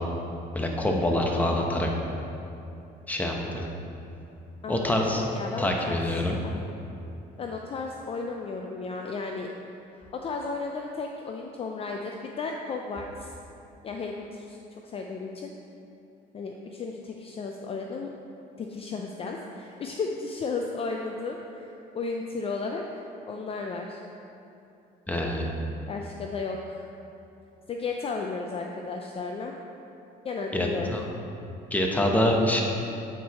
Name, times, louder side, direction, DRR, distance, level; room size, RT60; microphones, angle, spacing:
voice 1, 0.5-1.9 3.1-3.7 4.7-5.2 5.6-6.4 25.1-25.5 30.5-31.1 31.7-32.6, left 1 dB, 10° left, 0 dB, 0.9 m, -25 dB
voice 2, 4.6-6.0 6.4-6.6 7.4-9.5 9.9-13.3 13.8-15.5 16.3-18.1 18.6-24.0 25.9-26.9 27.7-29.5 30.2-30.9, left 4 dB, 35° left, 2 dB, 0.4 m, -34 dB
8.0 x 4.7 x 4.1 m, 2.7 s
cardioid pair, 110°, 17 cm